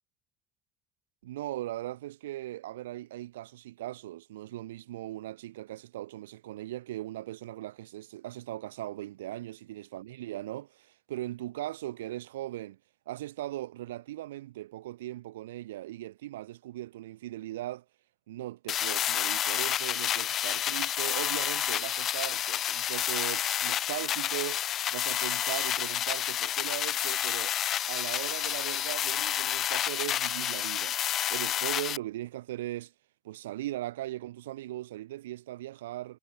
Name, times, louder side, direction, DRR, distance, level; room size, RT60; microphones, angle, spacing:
voice 1, 1.2-12.8 13.1-17.8 18.3-24.6 24.9-27.5 27.9-31.0 31.3-32.9 33.2-36.2, right 15 dB, 75° right, 3.4 m, -39 dB
sound 1, 18.7-32.0, left 11 dB, 50° left, 0.4 m, -30 dB
figure-of-eight pair, 60°, 0 cm